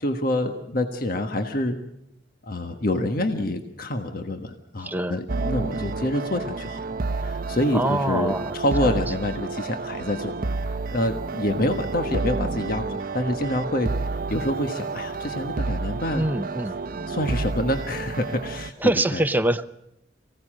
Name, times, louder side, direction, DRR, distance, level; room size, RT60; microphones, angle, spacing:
voice 1, 0.0-1.8 2.4-6.8 7.1-10.3 10.9-13.9 14.3-16.2 17.1-18.7 19.1-19.2, left 1 dB, 55° left, 6 dB, 1.4 m, -27 dB
voice 2, 4.8-5.2 7.7-8.6 8.8-9.0 16.1-16.8 18.8-19.6, right 1 dB, 10° right, 8 dB, 0.7 m, -24 dB
sound 1, 5.3-18.7, right 3 dB, 55° right, 0.7 m, -30 dB
24.5 x 16.5 x 7.6 m, 0.81 s
head